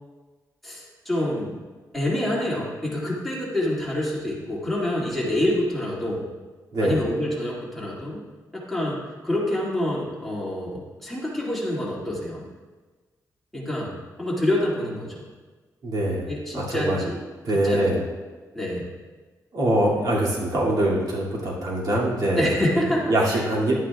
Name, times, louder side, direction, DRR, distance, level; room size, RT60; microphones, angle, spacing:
voice 1, 0.6-1.6 1.9-6.3 6.8-8.2 8.5-12.4 13.5-15.2 16.3-17.2 17.5-17.9 18.5-18.9 22.4-23.4, left 1 dB, 5° left, -6 dB, 2.1 m, -27 dB
voice 2, 15.8-16.3 16.5-17.0 17.4-18.0 19.5-22.5 22.8-23.8, right 1 dB, 70° right, -5 dB, 2.3 m, -23 dB
11.0 x 9.5 x 2.3 m, 1.3 s
wide cardioid pair, 140°, 7 cm